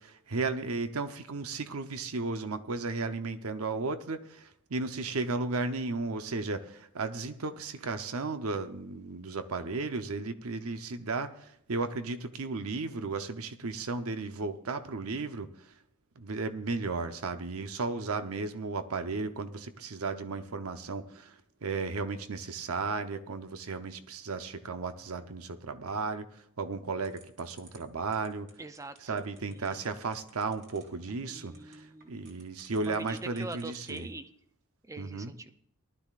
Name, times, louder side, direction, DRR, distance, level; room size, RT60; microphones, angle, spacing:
voice 1, 0.0-15.7 16.2-28.5 29.0-34.1 35.0-35.3, right 3 dB, 85° right, 9 dB, 0.8 m, -35 dB
sound 1, 27.0-34.2, right 5 dB, 60° right, 2.9 m, -58 dB
voice 2, 28.6-29.9 31.3-32.1 32.8-34.3 34.8-35.5, right 2 dB, 15° right, 9 dB, 0.5 m, -43 dB
19.0 x 12.0 x 2.5 m, 0.71 s
head